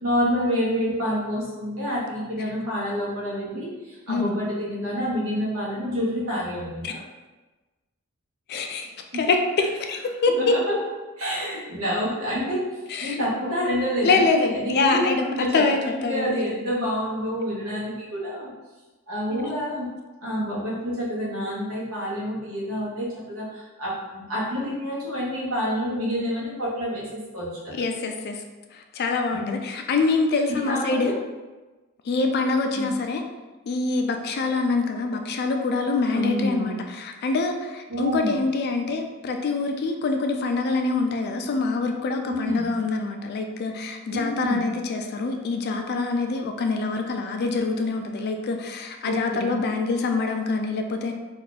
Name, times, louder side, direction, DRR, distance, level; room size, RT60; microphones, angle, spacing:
voice 1, 0.0-7.0 8.8-8.9 10.4-10.6 11.2-12.6 13.0-18.5 19.1-19.9 20.2-27.0 27.3-27.8 29.3-29.6 30.5-31.2 32.7-32.9 36.1-36.8 37.9-38.3 42.2-42.7 44.1-44.6 49.0-49.7, equal, 65° right, -6 dB, 1.1 m, -28 dB
voice 2, 8.5-8.9 9.1-10.5 12.9-13.2 14.0-16.4 19.3-19.4 27.7-28.4 28.7-31.1 32.0-33.2 33.7-51.1, left 3 dB, 45° left, 4 dB, 0.3 m, -25 dB
2.7 x 2.4 x 3.8 m, 1.2 s
head